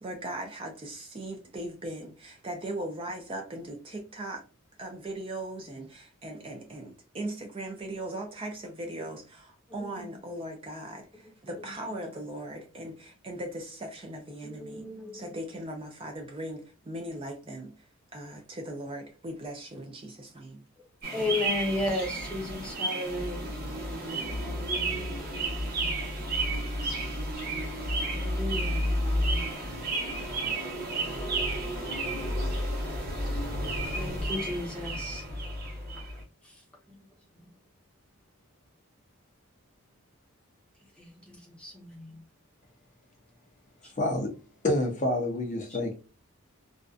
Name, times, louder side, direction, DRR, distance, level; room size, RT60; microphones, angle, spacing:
voice 1, 0.0-4.4 4.8-14.9 15.1-20.6 21.2-21.5, right 1 dB, 25° right, 0.4 m, -39 dB
voice 2, 14.6-15.3 21.1-23.5 28.1-28.9 34.0-35.2 41.0-42.2, left 2 dB, 5° left, 0.7 m, -34 dB
sound 1, 21.0-36.2, right 1 dB, 40° right, 0.9 m, -31 dB
voice 3, 44.0-44.4 44.6-45.9, left 1 dB, 35° left, 0.5 m, -28 dB
2.5 x 2.2 x 2.3 m
head